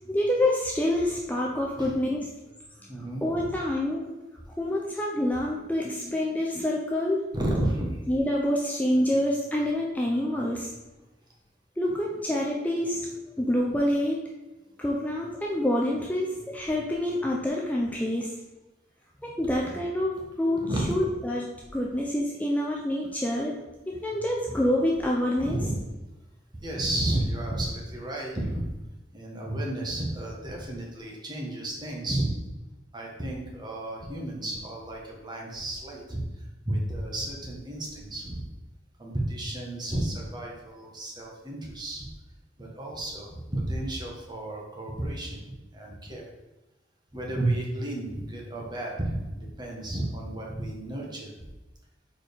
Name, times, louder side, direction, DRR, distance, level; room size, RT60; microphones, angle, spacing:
voice 1, 0.1-2.3 3.2-4.2 4.6-7.3 8.1-10.7 11.8-13.1 13.4-14.2 14.8-18.3 19.2-23.6 23.9-25.6, left 1 dB, 10° left, -2 dB, 0.5 m, -27 dB
voice 2, 2.9-3.5 7.3-8.0 20.6-20.9 25.4-25.8 26.6-28.7 29.1-32.4 32.9-36.2 36.6-38.4 39.0-42.1 42.6-45.4 45.7-46.3 47.1-51.3, right 1 dB, 25° right, -1 dB, 1.3 m, -32 dB
4.4 x 4.4 x 5.2 m, 1.1 s
head